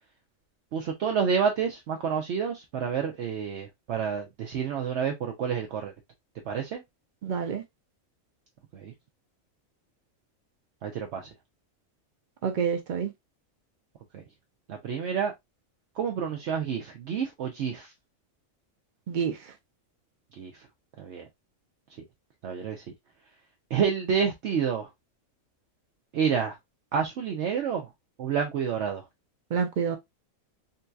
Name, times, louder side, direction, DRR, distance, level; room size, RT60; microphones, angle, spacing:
voice 1, 0.7-5.9 6.4-6.8 8.7-8.9 10.8-11.3 14.1-14.2 14.7-15.3 16.0-17.9 20.4-20.7 21.0-21.3 22.4-22.8 23.7-24.9 26.1-26.6 26.9-27.9 28.2-29.0, right 7 dB, 65° right, 0.8 m, -29 dB
voice 2, 7.2-7.6 12.4-13.1 19.1-19.5 29.5-30.0, right 7 dB, 90° right, 0.4 m, -28 dB
3.8 x 2.7 x 2.2 m
omnidirectional pair, 1.4 m